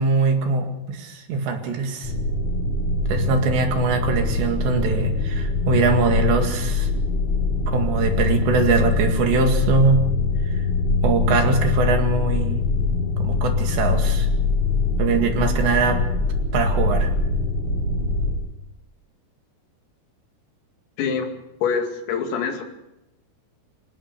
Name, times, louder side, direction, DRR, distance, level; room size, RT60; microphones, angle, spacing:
voice 1, 0.0-2.1 3.1-6.9 7.7-10.0 10.5-10.6 11.0-12.6 13.2-14.3 15.0-16.0 16.5-17.1, right 4 dB, 65° right, 4 dB, 4.1 m, -22 dB
sound 1, 2.0-18.3, left 3 dB, 30° left, 6.1 m, -23 dB
voice 2, 21.0-21.3 21.6-22.6, left 6 dB, 80° left, 4 dB, 5.1 m, -24 dB
26.0 x 18.0 x 6.8 m, 0.89 s
omnidirectional pair, 5.9 m